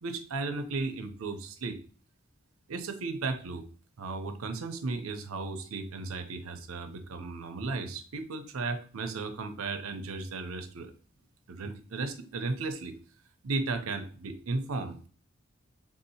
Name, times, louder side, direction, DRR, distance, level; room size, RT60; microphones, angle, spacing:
voice 1, 0.0-1.8 2.7-3.6 4.0-10.9 11.5-12.9 13.4-15.1, right 3 dB, 90° right, 7 dB, 0.6 m, -35 dB
3.7 x 2.7 x 2.7 m, 0.42 s
head